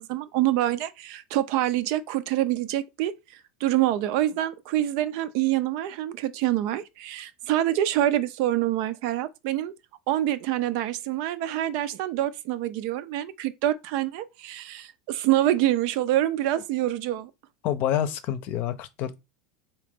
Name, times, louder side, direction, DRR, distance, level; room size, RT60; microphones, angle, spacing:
voice 1, 0.0-3.1 3.6-9.7 10.1-17.3, right 13 dB, 60° right, 0.5 m, -26 dB
voice 2, 17.6-19.2, left 10 dB, 50° left, 0.6 m, -27 dB
3.8 x 2.9 x 3.5 m
supercardioid pair, 120°, 4 cm